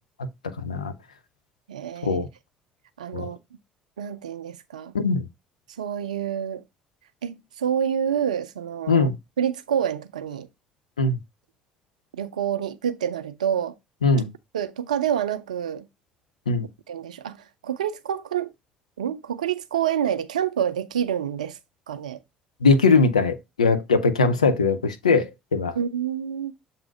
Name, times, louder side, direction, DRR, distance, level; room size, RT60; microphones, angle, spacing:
voice 1, 0.6-0.9 2.0-2.3 3.1-3.3 4.9-5.2 8.9-9.2 11.0-11.2 14.0-14.3 16.5-16.7 22.6-25.7, left 4 dB, 85° left, 0.5 m, -20 dB
voice 2, 1.7-2.2 3.0-3.4 4.0-4.9 5.8-6.6 7.2-9.1 9.4-10.5 12.1-13.7 14.5-15.9 16.9-18.5 19.0-21.6 21.9-22.2 25.7-26.5, right 9 dB, 80° right, 0.4 m, -27 dB
7.2 x 2.6 x 5.1 m
figure-of-eight pair, 50°, 4 cm